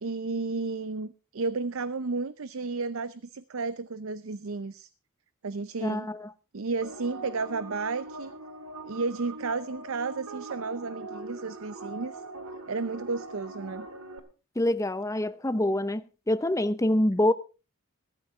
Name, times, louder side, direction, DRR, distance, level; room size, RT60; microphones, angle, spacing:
voice 1, 0.0-4.9 5.4-6.1 6.5-8.3 8.8-12.2 12.7-13.9, right 4 dB, 65° right, 0.6 m, -32 dB
voice 2, 5.8-6.3 14.6-17.3, left 1 dB, 15° left, 0.6 m, -26 dB
sound 1, 6.8-14.2, right 2 dB, 80° right, 2.1 m, -42 dB
15.5 x 14.5 x 3.6 m
head